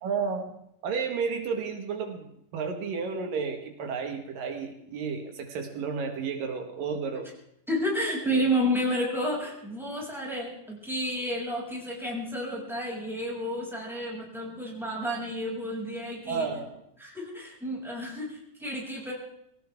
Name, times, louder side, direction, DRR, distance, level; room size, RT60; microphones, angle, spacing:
voice 1, 0.0-0.5 0.8-7.3 8.3-8.4 16.3-16.8, right 5 dB, 85° right, 5 dB, 3.4 m, -32 dB
voice 2, 7.7-16.5 17.0-19.1, equal, ahead, -3 dB, 6.2 m, -31 dB
23.5 x 17.0 x 3.6 m, 0.74 s
omnidirectional pair, 3.8 m